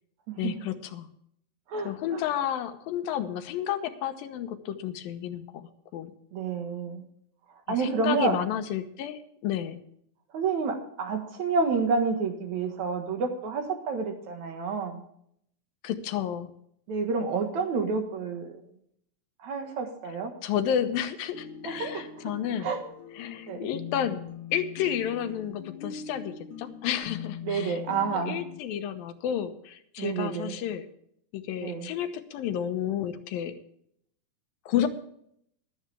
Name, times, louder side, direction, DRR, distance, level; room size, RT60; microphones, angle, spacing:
voice 1, 0.4-1.1 1.8-6.1 7.7-9.8 15.8-16.5 20.4-22.7 23.2-24.2 24.5-30.9 31.3-33.5 34.7-34.9, left 10 dB, 90° left, 9 dB, 2.8 m, -31 dB
voice 2, 1.7-2.2 6.3-7.0 7.7-8.4 10.3-15.0 16.9-18.6 19.4-20.3 21.6-22.3 22.6-22.8 23.5-23.7 27.4-28.4 30.0-30.6 31.6-31.9, right 4 dB, 60° right, 5 dB, 2.7 m, -29 dB
sound 1, 21.3-28.6, left 8 dB, 70° left, 2.3 m, -42 dB
15.5 x 12.5 x 3.4 m, 0.70 s
omnidirectional pair, 4.1 m